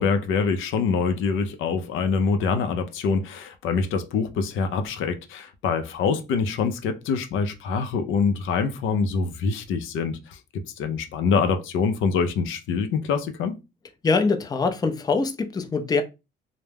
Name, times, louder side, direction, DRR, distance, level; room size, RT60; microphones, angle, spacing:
voice 1, 0.0-13.6, left 5 dB, 80° left, 0.5 m, -25 dB
voice 2, 14.0-16.0, left 4 dB, 20° left, 0.4 m, -23 dB
2.2 x 2.0 x 3.2 m
cardioid pair, 90°, 20 cm